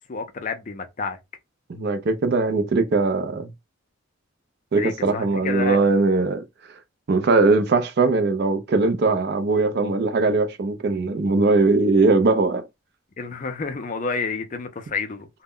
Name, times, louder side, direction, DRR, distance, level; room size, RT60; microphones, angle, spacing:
voice 1, 0.1-1.2 4.7-5.8 13.2-15.3, left 4 dB, 35° left, 0.4 m, -29 dB
voice 2, 1.7-3.5 4.7-6.4 7.1-12.6, right 3 dB, 50° right, 0.4 m, -20 dB
2.1 x 2.0 x 3.6 m
head